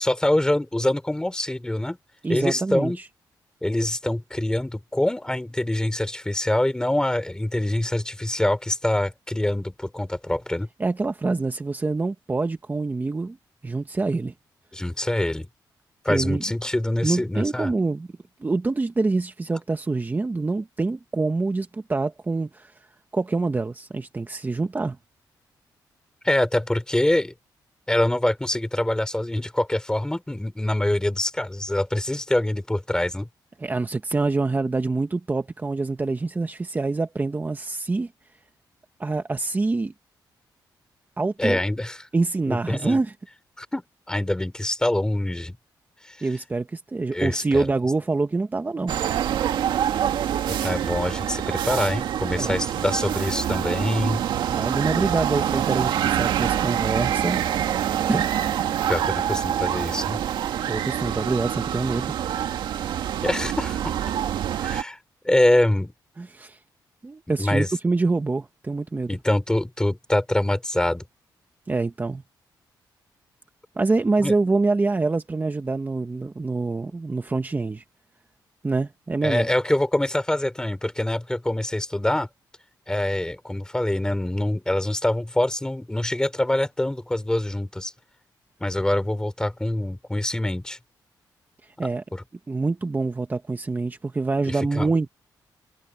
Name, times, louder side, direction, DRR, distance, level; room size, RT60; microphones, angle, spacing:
voice 1, 0.0-2.0 2.3-3.0 3.6-10.7 14.7-15.5 16.0-17.7 26.2-27.3 27.9-33.3 41.4-42.0 42.5-43.0 43.6-45.6 46.0-46.3 47.1-47.7 50.5-54.2 58.9-60.2 63.2-63.9 64.6-65.0 65.2-65.9 67.4-67.7 69.1-71.0 74.2-74.3 79.2-82.3 82.9-87.9 88.6-90.8 92.1-92.2 94.5-94.9, left 1 dB, 10° left, 3.8 m, -25 dB
voice 2, 2.2-3.1 10.8-13.4 13.6-14.3 16.1-16.4 17.0-18.1 18.4-22.9 23.1-25.0 33.6-38.1 39.0-39.9 41.2-41.6 42.1-43.1 46.2-49.0 52.4-52.6 54.5-57.4 58.1-58.3 60.7-62.1 66.2-66.6 67.0-69.2 71.7-72.2 73.8-77.8 78.6-79.5 91.6-92.0 92.5-95.1, right 3 dB, 25° right, 1.3 m, -25 dB
sound 1, 48.9-64.8, right 10 dB, 90° right, 1.9 m, -26 dB
cardioid pair, 100°, 8 cm